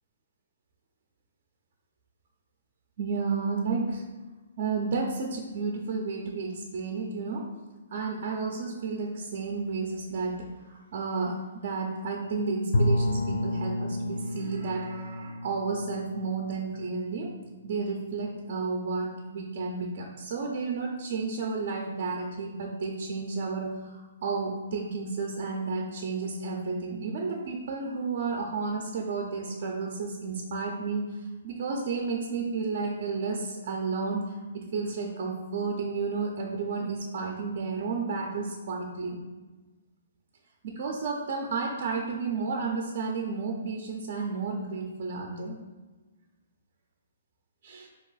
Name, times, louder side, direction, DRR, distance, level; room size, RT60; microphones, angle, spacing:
voice 1, 3.0-4.0 4.6-7.5 7.9-17.3 17.6-39.2 40.6-45.6 47.6-47.9, right 4 dB, 50° right, 1 dB, 0.6 m, -32 dB
Bowed string instrument, 12.7-17.5, left 1 dB, 60° left, 0.5 m, -30 dB
4.6 x 2.9 x 4.0 m, 1.2 s
hypercardioid pair, 160°, 0 cm